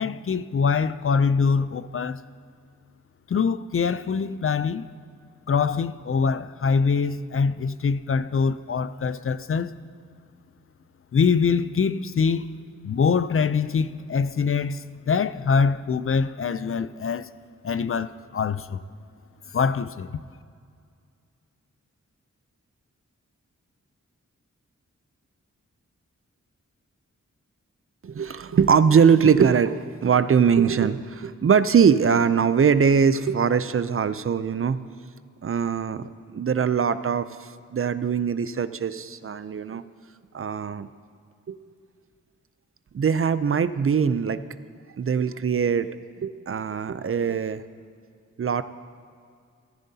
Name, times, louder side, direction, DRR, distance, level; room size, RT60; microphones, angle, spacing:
voice 1, 0.0-2.2 3.3-4.9 5.5-9.7 11.1-12.5 12.8-17.3 17.6-18.8 19.5-20.1, left 5 dB, 45° left, 0.4 m, -24 dB
voice 2, 28.0-34.8 35.4-39.8 40.3-40.9 41.5-41.6 42.9-44.4 45.0-45.9 46.2-47.6 48.4-48.6, right 6 dB, 45° right, 0.4 m, -22 dB
18.0 x 14.5 x 2.8 m
wide cardioid pair, 100°, 30 cm